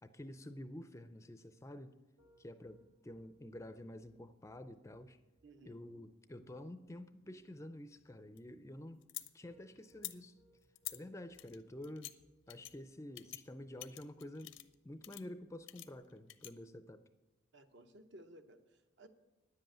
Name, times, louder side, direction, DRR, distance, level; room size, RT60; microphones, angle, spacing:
voice 1, 0.0-1.9 2.4-5.2 5.7-9.0 9.3-10.4 10.9-12.1 12.5-14.5 14.8-17.0, left 1 dB, 15° left, 11 dB, 0.4 m, -49 dB
Piano, 2.2-16.0, right 1 dB, 80° right, 3.3 m, -70 dB
voice 2, 5.4-5.8 17.5-19.1, right 1 dB, 60° right, 8 dB, 1.0 m, -58 dB
sound 1, 8.0-9.3 9.9-10.1 10.7-11.0 11.3-12.1 12.5-12.7 13.1-13.4 13.8-14.7 15.0-15.2 15.7-16.5, left 16 dB, 75° left, 0.7 m, -47 dB
10.0 x 7.8 x 9.1 m, 1.1 s
head